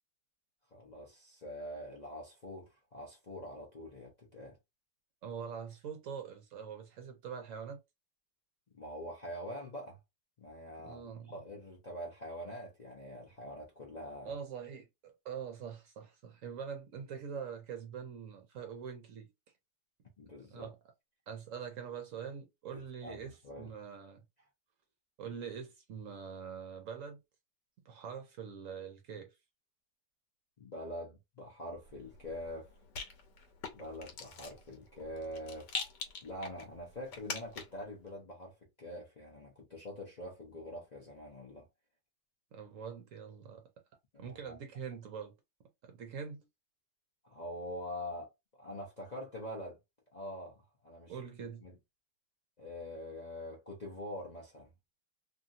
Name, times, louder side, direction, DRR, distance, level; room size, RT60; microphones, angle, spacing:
voice 1, 0.7-4.6 8.7-10.0 10.4-11.0 11.3-14.4 20.2-20.7 22.7-23.7 30.6-32.8 33.7-35.7 36.2-41.7 44.1-44.6 47.2-48.3 48.6-49.8 50.1-51.2 51.6-51.8 52.6-54.7, equal, 65° left, 0.4 m, -44 dB
voice 2, 5.2-7.8 10.8-11.3 14.2-19.3 20.5-20.8 21.3-24.2 25.2-27.2 27.8-29.3 42.5-43.6 44.2-45.3 45.8-46.5 51.1-51.6, right 7 dB, 65° right, 0.8 m, -44 dB
Rattle, 31.8-37.9, left 5 dB, 80° left, 1.4 m, -45 dB
2.8 x 2.6 x 2.6 m
omnidirectional pair, 1.9 m